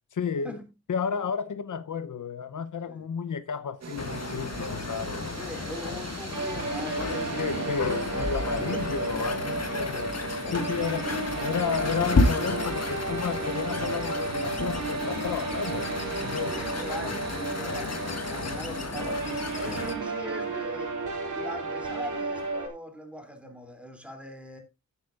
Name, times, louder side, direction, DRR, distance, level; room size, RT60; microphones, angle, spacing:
voice 1, 0.1-0.6 0.9-5.3 7.3-10.1 10.5-11.0 11.4-15.9 16.2-16.5, left 7 dB, 80° left, 0.8 m, -32 dB
sound 1, 3.8-18.8, right 5 dB, 60° right, 1.5 m, -44 dB
sound 2, 4.0-19.9, left 3 dB, 55° left, 1.7 m, -32 dB
voice 2, 5.4-7.8 8.7-8.9 10.4-10.9 16.4-20.9 21.3-24.6, equal, 5° right, 2.9 m, -41 dB
sound 3, 6.3-22.7, right 3 dB, 80° right, 2.8 m, -33 dB
16.0 x 8.2 x 2.5 m
wide cardioid pair, 110°, 30 cm